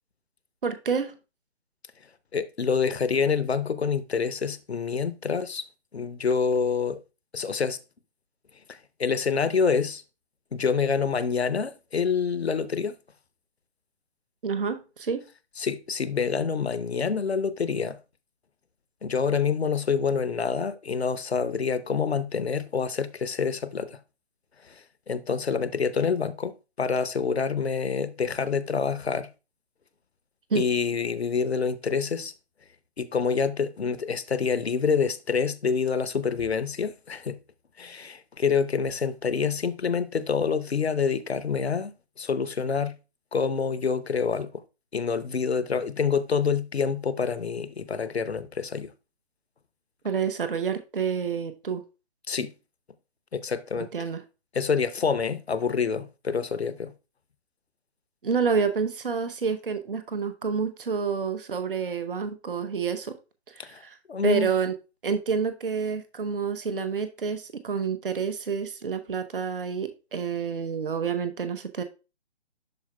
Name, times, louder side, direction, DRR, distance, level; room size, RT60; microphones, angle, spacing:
voice 1, 0.6-1.1 14.4-15.3 30.5-30.6 50.0-51.8 53.8-54.2 58.2-63.2 63.5-64.0 64.2-64.7 65.0-71.8, right 6 dB, 50° right, 0.9 m, -28 dB
voice 2, 2.3-5.6 5.9-7.0 7.3-7.8 8.7-10.0 10.5-12.9 15.6-18.0 19.0-24.0 24.7-29.3 30.5-32.3 33.0-37.4 37.8-41.9 42.2-43.0 43.3-44.6 44.9-48.9 52.3-52.5 53.3-53.9 54.5-56.9 63.6-63.8 64.1-64.5, left 5 dB, 65° left, 0.8 m, -27 dB
12.0 x 4.5 x 2.3 m
figure-of-eight pair, 140°, 34 cm